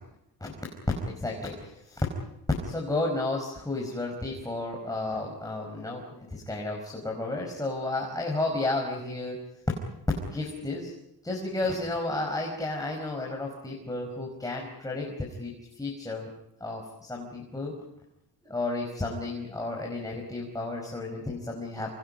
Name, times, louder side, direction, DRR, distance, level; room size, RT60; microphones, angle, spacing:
voice 1, 1.0-2.0 2.6-9.4 10.3-10.9 11.2-16.3 16.6-17.7 18.4-21.9, left 2 dB, 10° left, -1 dB, 5.0 m, -32 dB
28.0 x 28.0 x 5.3 m, 0.82 s
cardioid pair, 130°, 41 cm